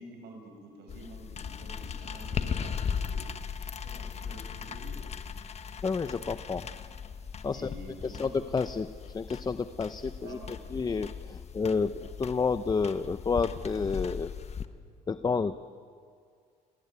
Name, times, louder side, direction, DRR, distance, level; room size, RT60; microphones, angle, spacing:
voice 1, 0.0-3.3 3.7-5.0 7.5-8.3 10.2-10.6, right 2 dB, 80° right, 4 dB, 6.9 m, -48 dB
sound 1, 0.9-14.6, left 7 dB, 40° left, 1.3 m, -38 dB
voice 2, 5.8-6.7 7.4-7.7 8.0-10.4 10.7-14.3 15.1-15.6, left 5 dB, 25° left, 12 dB, 0.7 m, -30 dB
29.0 x 19.5 x 9.6 m, 2.1 s
cardioid pair, 110°, 17 cm